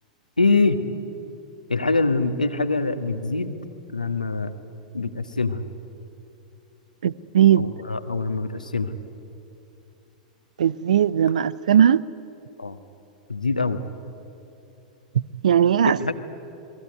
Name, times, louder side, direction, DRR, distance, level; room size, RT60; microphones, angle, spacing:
voice 1, 0.4-0.8 1.7-3.6 3.9-4.5 4.9-5.6 7.6-8.9 12.6-12.8 13.3-13.8 15.8-16.1, left 3 dB, 85° left, 1.6 m, -24 dB
voice 2, 7.0-7.7 10.6-12.0 15.1-16.1, right 9 dB, 65° right, 0.7 m, -19 dB
29.5 x 21.5 x 9.4 m
figure-of-eight pair, 95°, 4 cm